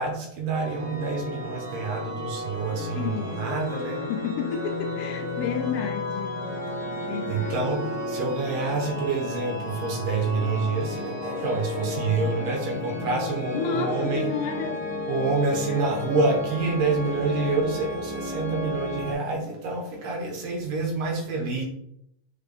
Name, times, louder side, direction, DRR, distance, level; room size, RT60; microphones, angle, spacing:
voice 1, 0.0-4.0 7.3-14.3 15.1-21.7, right 3 dB, 75° right, 0 dB, 2.5 m, -27 dB
sound 1, 0.5-19.1, left 2 dB, 55° right, 0.4 m, -33 dB
voice 2, 2.9-3.5 4.1-6.6 7.0-8.0 13.5-14.9 15.7-15.8, left 6 dB, 80° left, 3 dB, 2.0 m, -32 dB
6.9 x 3.3 x 2.2 m, 0.76 s
omnidirectional pair, 3.9 m